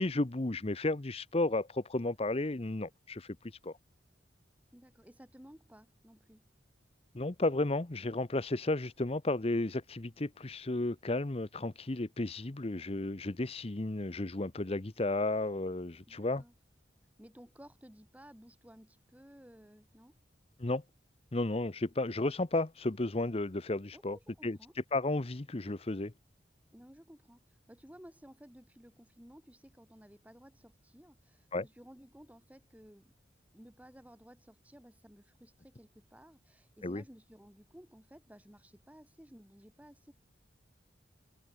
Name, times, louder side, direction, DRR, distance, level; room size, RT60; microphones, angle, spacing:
voice 1, 0.0-3.4 3.6-3.8 7.1-16.4 20.6-20.8 21.3-24.2 24.4-24.6 24.9-26.1 31.5-31.6 36.8-37.0, left 2 dB, 30° left, 0.8 m, -33 dB
voice 2, 4.7-6.4 16.1-16.5 17.2-20.2 23.9-24.7 26.7-27.4 27.7-33.1 33.5-40.1, equal, 10° right, 2.3 m, -56 dB
head